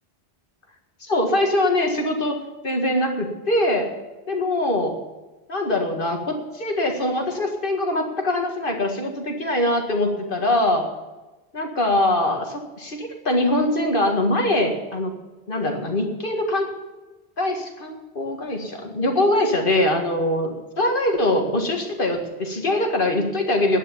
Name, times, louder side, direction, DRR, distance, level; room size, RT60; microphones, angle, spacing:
voice 1, 1.0-2.4 2.6-3.9 4.3-4.9 5.5-10.8 11.5-15.1 15.5-16.7 17.4-23.8, left 1 dB, 55° left, 3 dB, 2.1 m, -23 dB
11.0 x 9.4 x 9.9 m, 1.1 s
omnidirectional pair, 1.0 m